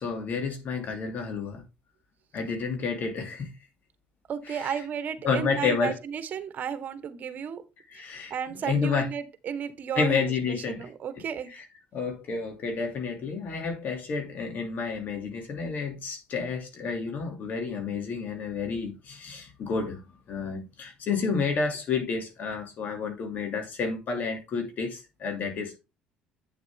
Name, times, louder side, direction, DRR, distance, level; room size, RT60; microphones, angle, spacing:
voice 1, 0.0-1.6 2.3-3.5 4.5-4.7 5.2-6.0 7.9-9.1 10.0-10.9 11.5-11.6 11.9-20.0 20.3-25.8, left 5 dB, 55° left, 2.8 m, -30 dB
voice 2, 4.3-7.6 7.9-11.5, right 8 dB, 50° right, 1.4 m, -33 dB
8.8 x 7.0 x 3.7 m
supercardioid pair, 80°, 4 cm